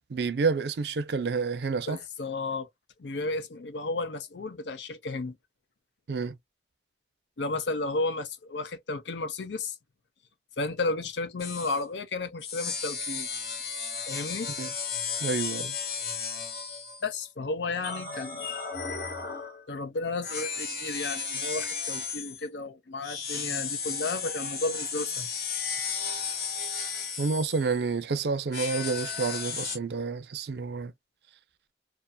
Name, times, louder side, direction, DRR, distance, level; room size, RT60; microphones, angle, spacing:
voice 1, 0.1-2.0 6.1-6.3 14.6-14.7 15.2-15.7 27.2-30.9, right 4 dB, 70° right, 0.4 m, -29 dB
voice 2, 1.9-2.7 3.0-5.4 7.4-9.8 10.6-13.3 14.1-14.5 17.0-18.9 19.7-25.3, left 3 dB, 90° left, 0.6 m, -33 dB
sound 1, 11.4-11.8 12.4-17.2 17.8-19.7 20.2-22.4 23.0-27.9 28.5-29.8, left 5 dB, 60° left, 1.0 m, -34 dB
2.6 x 2.4 x 2.2 m
head